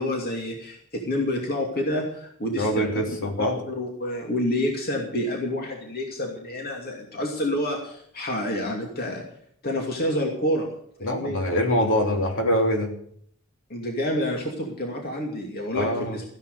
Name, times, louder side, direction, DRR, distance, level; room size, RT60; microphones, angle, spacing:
voice 1, 0.0-3.0 3.4-9.2 9.6-10.7 11.0-11.4 13.7-16.2, left 1 dB, 45° left, 1 dB, 2.6 m, -28 dB
voice 2, 2.6-3.6 11.0-12.9 15.7-16.2, equal, 60° left, 2 dB, 3.1 m, -24 dB
15.0 x 10.5 x 6.8 m, 0.63 s
head